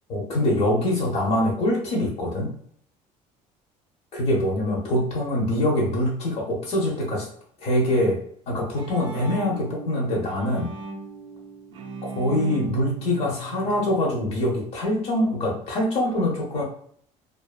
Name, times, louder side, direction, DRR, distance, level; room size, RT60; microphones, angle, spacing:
voice 1, 0.1-2.5 4.1-7.3 7.6-8.2 8.5-10.7 12.1-16.6, left 1 dB, 50° left, -2 dB, 0.6 m, -24 dB
Bowed string instrument, 8.4-14.5, right 5 dB, 35° right, 0.4 m, -38 dB
2.5 x 2.3 x 2.2 m, 0.63 s
cardioid pair, 175°, 14 cm